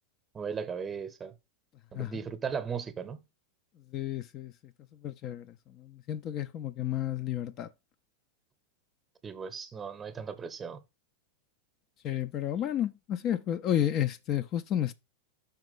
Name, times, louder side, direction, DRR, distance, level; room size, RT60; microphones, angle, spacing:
voice 1, 0.3-1.3 1.9-3.2 9.2-10.8 12.5-12.7, right 6 dB, 20° right, 0.8 m, -37 dB
voice 2, 3.9-4.5 5.0-7.7 12.0-14.9, left 11 dB, 35° left, 0.4 m, -31 dB
5.8 x 3.7 x 4.7 m
figure-of-eight pair, 90°, 0 cm